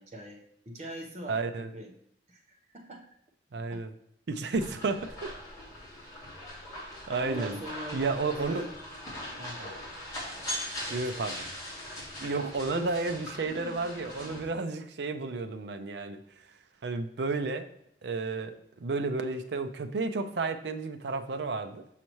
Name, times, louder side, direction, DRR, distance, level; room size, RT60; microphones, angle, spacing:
voice 1, 0.0-1.9 2.3-3.1 3.5-3.8 7.1-8.7 9.4-9.6 10.9-11.3 12.7-12.9, right 1 dB, 40° right, 0 dB, 0.9 m, -42 dB
voice 2, 1.3-1.7 3.5-3.9 4.3-5.3 7.1-7.6 7.9-8.6 9.6-9.7 10.9-11.4 12.2-16.2 16.8-17.7 18.0-18.6 18.8-21.8, right 3 dB, 75° right, 9 dB, 0.5 m, -32 dB
sound 1, 4.5-14.4, left 1 dB, 20° left, 2.3 m, -41 dB
6.4 x 5.7 x 3.1 m, 0.74 s
head